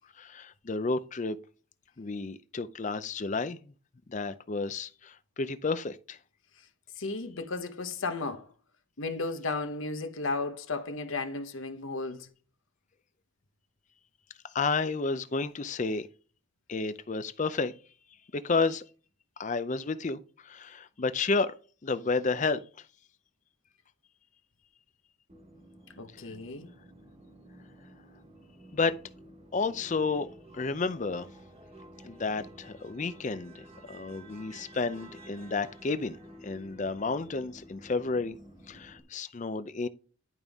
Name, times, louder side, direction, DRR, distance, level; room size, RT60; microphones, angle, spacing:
voice 1, 0.2-1.4 2.0-3.7 4.1-6.2 14.5-16.1 16.7-17.7 18.3-18.8 19.4-21.5 21.8-22.6 28.7-29.0 29.5-30.3 30.5-31.3 32.0-38.4 38.7-39.9, left 4 dB, 35° left, 0.5 m, -31 dB
voice 2, 7.0-8.5 9.0-12.3 26.0-26.7, left 3 dB, 70° left, 1.0 m, -34 dB
sound 1, 25.3-39.0, right 1 dB, 30° right, 1.4 m, -52 dB
11.0 x 5.3 x 3.5 m
head